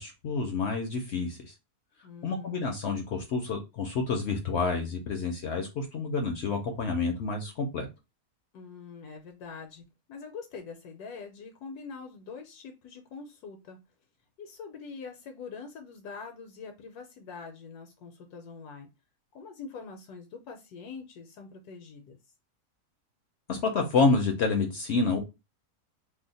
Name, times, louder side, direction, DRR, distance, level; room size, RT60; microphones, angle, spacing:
voice 1, 0.0-1.5 2.2-7.9 23.5-25.2, left 4 dB, 65° left, 4 dB, 0.7 m, -28 dB
voice 2, 2.0-2.7 8.5-13.8 14.4-18.9 19.3-22.2, left 5 dB, 80° left, 4 dB, 1.1 m, -44 dB
2.7 x 2.0 x 3.9 m, 0.25 s
omnidirectional pair, 1.6 m